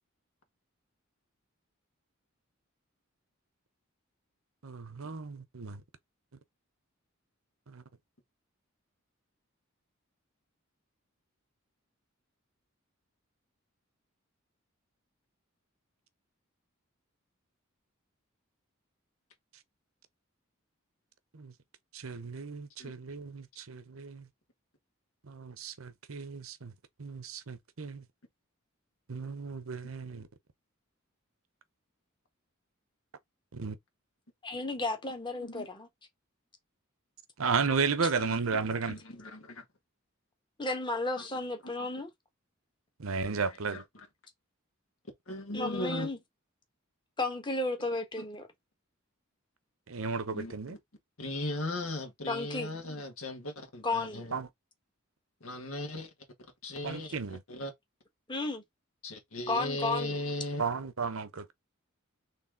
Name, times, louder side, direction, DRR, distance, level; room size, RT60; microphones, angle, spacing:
voice 1, 4.6-5.8 7.7-7.8 21.3-21.5 21.9-24.2 25.3-26.7 27.0-28.0 29.1-30.3 33.5-33.8 37.4-39.0 43.0-43.8 49.9-50.7 54.3-54.5 56.8-57.4 60.6-61.5, right 5 dB, 75° right, 0.8 m, -34 dB
voice 2, 34.4-35.9 40.6-42.1 45.5-46.2 47.2-48.5 52.3-52.7 53.8-54.2 57.0-57.1 58.3-58.6 59.5-60.2, left 2 dB, 25° left, 1.3 m, -33 dB
voice 3, 38.1-38.6 38.9-39.6 41.2-41.3 43.4-44.1 45.3-46.1 48.2-48.3 50.3-50.8 51.2-54.3 55.4-56.1 56.6-57.7 59.0-60.6, left 1 dB, 80° left, 1.9 m, -38 dB
4.2 x 3.3 x 3.6 m
head